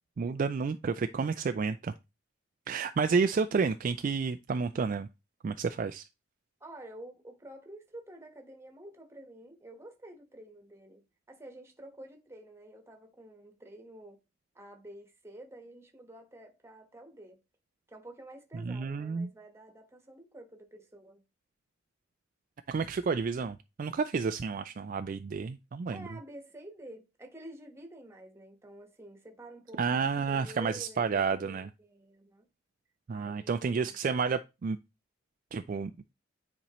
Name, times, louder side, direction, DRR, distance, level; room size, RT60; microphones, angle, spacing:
voice 1, 0.2-1.9 2.7-5.1 5.4-6.0 18.7-19.3 22.7-26.0 29.8-31.7 33.1-34.8 35.5-35.9, right 5 dB, 45° right, 0.3 m, -30 dB
voice 2, 6.6-14.2 14.5-17.4 17.9-21.2 25.9-31.1 31.8-32.5 33.1-34.0, right 1 dB, 15° right, 1.2 m, -49 dB
9.8 x 4.3 x 3.0 m
head